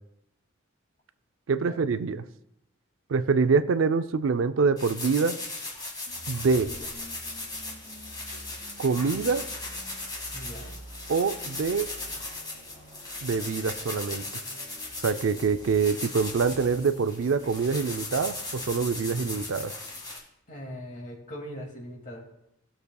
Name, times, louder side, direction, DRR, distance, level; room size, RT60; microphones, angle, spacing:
voice 1, 1.5-2.3 3.1-5.4 6.3-6.7 8.8-9.4 11.1-11.9 13.2-14.2 15.0-19.7, right 5 dB, 70° right, 11 dB, 0.5 m, -25 dB
sound 1, 4.8-20.2, left 2 dB, 20° left, 2.0 m, -38 dB
sound 2, 6.1-19.7, right 1 dB, 35° right, 2.0 m, -49 dB
voice 2, 10.3-10.7 20.5-22.2, equal, 40° left, -1 dB, 2.2 m, -40 dB
17.5 x 6.7 x 2.3 m, 0.80 s
head